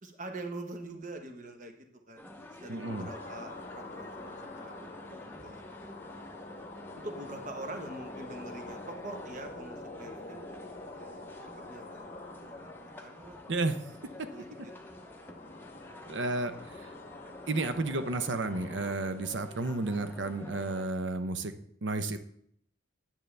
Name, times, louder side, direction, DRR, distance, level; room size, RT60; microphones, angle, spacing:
voice 1, 0.0-5.6 6.9-10.5 10.9-11.3 11.6-12.1 12.6-13.4 14.3-14.7, right 2 dB, 40° right, 4 dB, 1.2 m, -44 dB
sound 1, 2.2-20.9, left 1 dB, 10° left, 0.8 m, -49 dB
voice 2, 2.7-3.1 13.5-13.8 14.2-14.3 16.1-16.5 17.5-21.5 21.8-22.2, right 2 dB, 60° right, 9 dB, 0.8 m, -32 dB
sound 2, 2.8-18.9, left 2 dB, 40° left, 0.9 m, -47 dB
9.3 x 9.0 x 3.3 m, 0.69 s
head